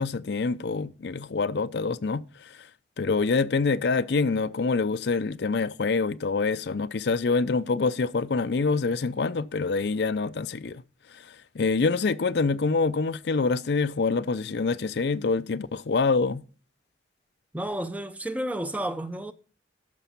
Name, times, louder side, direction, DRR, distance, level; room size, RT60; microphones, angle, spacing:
voice 1, 0.0-2.2 3.0-10.8 11.3-16.4, left 4 dB, 65° left, 0.5 m, -26 dB
voice 2, 17.5-19.3, right 1 dB, 10° right, 0.6 m, -31 dB
12.5 x 6.2 x 5.8 m
head